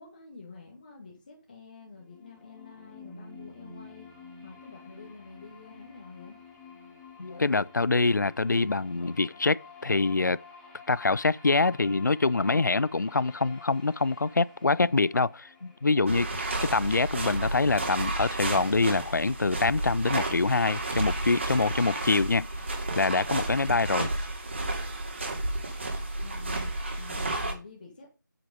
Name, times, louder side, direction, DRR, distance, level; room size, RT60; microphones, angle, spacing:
voice 1, 0.0-6.4 26.2-26.7 27.0-28.1, left 4 dB, 25° left, 1.9 m, -48 dB
sound 1, 1.8-17.8, left 4 dB, 5° left, 1.2 m, -50 dB
voice 2, 7.2-10.4 10.9-16.3 16.6-22.5 23.0-24.1, left 3 dB, 60° left, 0.4 m, -25 dB
sound 2, 16.1-27.5, right 2 dB, 35° right, 2.7 m, -32 dB
8.9 x 8.0 x 5.1 m
figure-of-eight pair, 165°, 11 cm